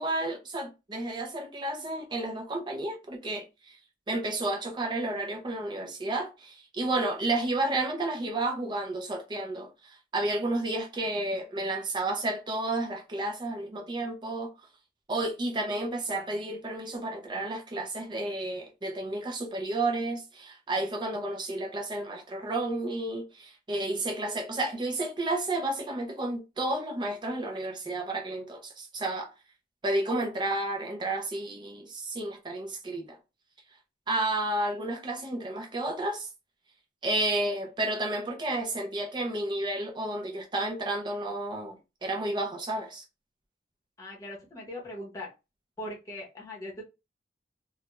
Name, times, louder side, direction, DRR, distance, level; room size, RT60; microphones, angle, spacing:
voice 1, 0.0-3.8 4.1-14.5 15.1-29.3 29.8-33.2 34.1-36.3 37.0-43.0, right 2 dB, 25° right, 0.4 m, -31 dB
voice 2, 44.0-45.3 45.8-46.8, left 1 dB, 20° left, 0.7 m, -40 dB
2.3 x 2.1 x 2.9 m
head